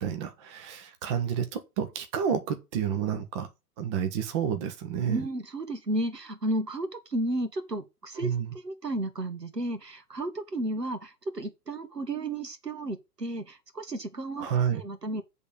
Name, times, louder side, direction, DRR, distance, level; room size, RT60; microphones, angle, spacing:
voice 1, 0.0-3.5 3.8-5.2 8.2-8.5 14.4-14.8, right 8 dB, 20° right, 0.6 m, -30 dB
voice 2, 5.1-14.5 14.7-15.2, right 1 dB, 85° right, 1.5 m, -33 dB
8.2 x 3.6 x 6.5 m
figure-of-eight pair, 115°, 47 cm